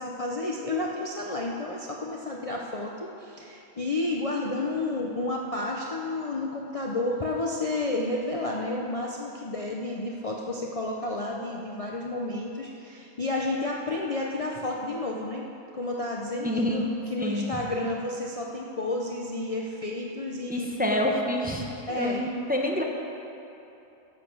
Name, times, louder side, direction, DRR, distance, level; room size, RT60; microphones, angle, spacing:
voice 1, 0.0-15.5 15.7-16.8 17.1-21.2 21.9-22.2, left 2 dB, 35° left, -2 dB, 0.6 m, -31 dB
voice 2, 16.4-16.9 17.2-17.6 20.5-22.8, left 1 dB, 10° right, 0 dB, 0.8 m, -27 dB
12.0 x 7.6 x 6.2 m, 2.9 s
omnidirectional pair, 1.4 m